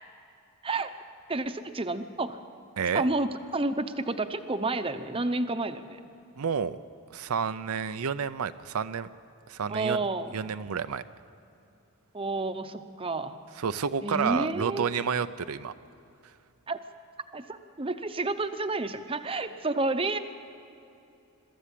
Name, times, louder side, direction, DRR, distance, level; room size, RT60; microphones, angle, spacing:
voice 1, 0.6-0.9 1.3-2.4 2.9-6.0 9.7-10.3 12.1-13.3 14.0-14.9 16.7-16.8 17.3-20.2, right 2 dB, 25° right, 9 dB, 0.8 m, -30 dB
voice 2, 2.8-3.1 6.4-6.8 7.1-9.1 9.5-10.0 10.3-11.0 13.6-15.7, right 6 dB, 75° right, 11 dB, 0.5 m, -30 dB
22.5 x 14.0 x 8.4 m, 2.7 s
head